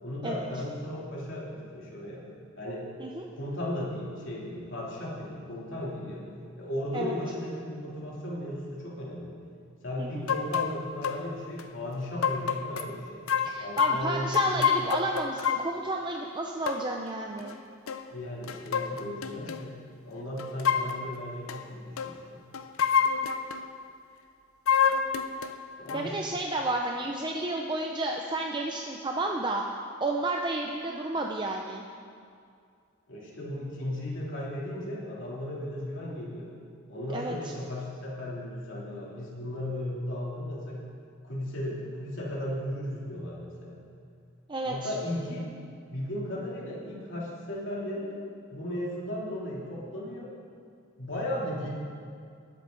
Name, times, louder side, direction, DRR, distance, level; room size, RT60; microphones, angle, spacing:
voice 1, 0.0-2.3 2.6-2.9 3.3-6.3 6.5-9.4 9.8-13.2 13.6-14.7 18.1-22.4 25.8-26.2 33.1-36.5 36.9-40.9 41.2-43.8 44.6-45.5 45.9-48.1 48.5-50.3 51.0-51.7, left 1 dB, 60° left, -5 dB, 3.1 m, -36 dB
sound 1, 10.3-10.7 11.0-11.2 11.6-11.7 12.2-12.9 13.3-15.7 16.7-16.8 17.4-17.5 17.9-18.1 18.4-19.6 20.4-21.0 21.5-21.6 22.0-22.1 22.5-23.6 24.7-25.6 25.9-26.0, left 7 dB, 80° left, 0.6 m, -27 dB
voice 2, 13.4-17.6 25.9-29.6 30.0-31.8 37.1-37.4 44.5-44.9, right 2 dB, 20° right, 1 dB, 0.6 m, -31 dB
20.5 x 8.4 x 3.9 m, 2.3 s
head